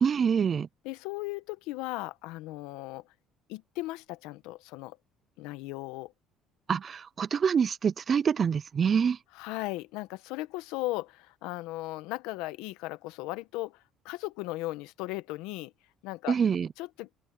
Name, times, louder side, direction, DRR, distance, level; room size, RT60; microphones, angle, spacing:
voice 1, 0.0-0.7 6.7-9.2 16.3-16.7, right 7 dB, 40° right, 0.4 m, -26 dB
voice 2, 0.8-3.0 3.5-5.0 5.4-6.1 9.3-15.7 16.0-16.4 16.8-17.1, left 19 dB, 85° left, 1.0 m, -37 dB
open air
cardioid pair, 95°, 0 cm